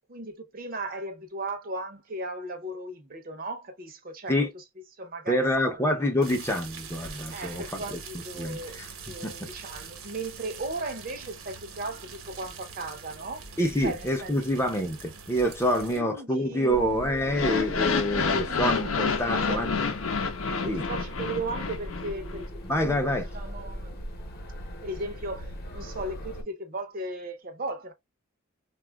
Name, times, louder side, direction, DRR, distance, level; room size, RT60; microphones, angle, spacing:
voice 1, 0.1-4.6 5.0-6.3 7.3-8.8 9.1-13.4 13.8-14.3 15.7-17.2 18.4-19.9 20.5-22.4 22.7-23.0 23.3-24.0 24.8-27.9, right 2 dB, 45° right, 0.6 m, -37 dB
voice 2, 5.3-7.8 8.4-8.9 9.2-9.5 13.6-19.7 20.7-20.8 22.6-23.3, equal, 10° left, 0.5 m, -27 dB
sound 1, 6.2-16.0, right 5 dB, 85° right, 1.0 m, -43 dB
sound 2, 16.7-26.4, equal, 50° left, 0.8 m, -40 dB
sound 3, 17.3-22.4, left 5 dB, 80° left, 0.6 m, -29 dB
4.0 x 2.3 x 2.2 m
head